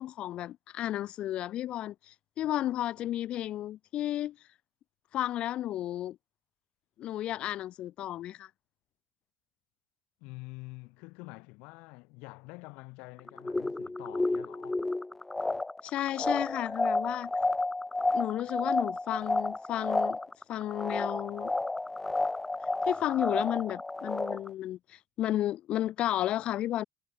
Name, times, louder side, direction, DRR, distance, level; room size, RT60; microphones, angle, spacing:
voice 1, 0.0-4.4 5.1-6.2 7.0-8.5 15.8-17.3 18.1-20.2 20.5-21.5 22.9-26.8, left 13 dB, 55° left, 0.8 m, -33 dB
voice 2, 10.2-14.8, left 26 dB, 75° left, 6.2 m, -47 dB
sound 1, 13.2-24.5, left 2 dB, 10° left, 0.5 m, -31 dB
hypercardioid pair, 75°, 2 cm